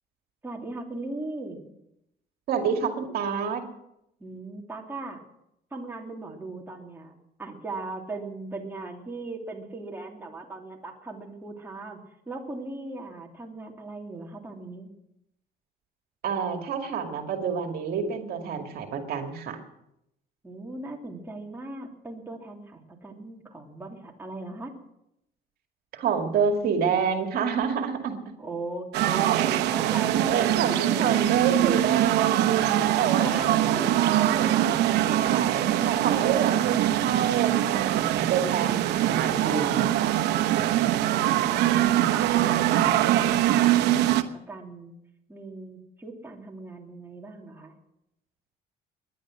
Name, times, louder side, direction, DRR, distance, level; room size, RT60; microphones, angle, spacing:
voice 1, 0.4-1.7 4.2-5.2 5.7-7.1 7.4-14.9 20.4-24.7 28.4-31.2 33.2-34.0 44.1-44.9 45.3-47.7, right 2 dB, 15° right, 0 dB, 2.8 m, -38 dB
voice 2, 2.5-3.6 16.2-19.6 25.9-28.2 30.3-34.6 35.1-40.1, right 7 dB, 65° right, 4 dB, 2.2 m, -28 dB
sound 1, 28.9-44.2, right 13 dB, 80° right, 1.0 m, -23 dB
20.0 x 11.0 x 6.3 m, 0.82 s
cardioid pair, 110°, 17 cm